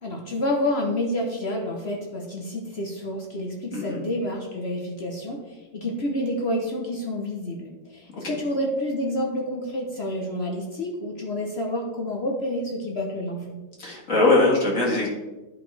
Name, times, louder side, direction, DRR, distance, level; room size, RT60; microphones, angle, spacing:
voice 1, 0.0-13.6, left 1 dB, 65° left, 0 dB, 0.6 m, -29 dB
voice 2, 3.7-4.0 8.1-8.4 13.8-15.1, left 2 dB, 40° left, -3 dB, 2.0 m, -21 dB
11.0 x 5.2 x 3.3 m, 1.2 s
omnidirectional pair, 2.4 m